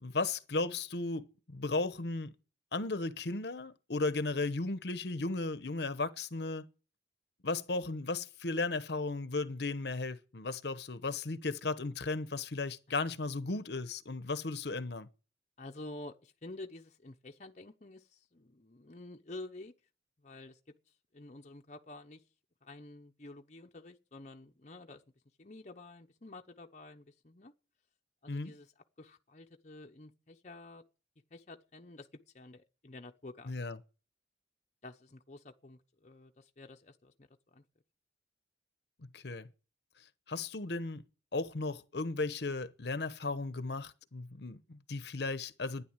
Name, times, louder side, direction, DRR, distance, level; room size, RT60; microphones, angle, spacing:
voice 1, 0.0-2.3 2.7-6.7 7.4-15.1 28.3-28.5 33.5-33.8 39.1-39.5 40.3-41.0 41.3-45.8, left 3 dB, 60° left, 0.9 m, -35 dB
voice 2, 15.6-19.7 20.2-20.6 21.1-22.2 22.6-25.0 25.4-27.5 28.2-28.7 29.0-30.8 31.3-32.1 32.3-33.6 34.8-37.6, left 2 dB, 40° left, 0.8 m, -50 dB
12.0 x 10.0 x 9.0 m
head